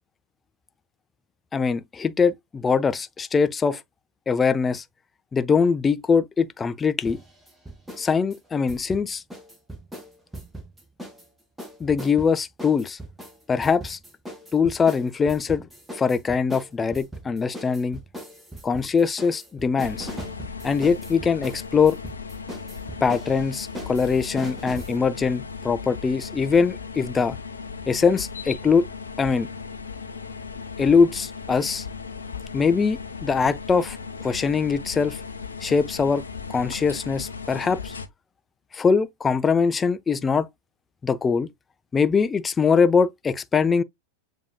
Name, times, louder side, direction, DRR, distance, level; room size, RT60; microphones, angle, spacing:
voice 1, 1.5-3.8 4.3-4.8 5.3-7.2 8.0-9.2 11.8-13.0 13.5-14.0 14.5-15.7 15.9-18.0 18.6-20.1 20.6-22.0 23.0-27.4 27.9-28.9 29.2-29.5 30.8-31.8 32.5-34.0 34.2-35.2 35.6-36.2 36.5-37.9 38.7-40.5 41.0-41.5 41.9-43.8, left 5 dB, 15° left, 0.3 m, -22 dB
sound 1, 7.1-8.1 8.3-11.3 11.6-25.0, equal, 5° right, 1.0 m, -39 dB
sound 2, 19.8-38.1, left 5 dB, 75° left, 0.5 m, -37 dB
6.9 x 2.6 x 2.2 m
figure-of-eight pair, 90°, 0 cm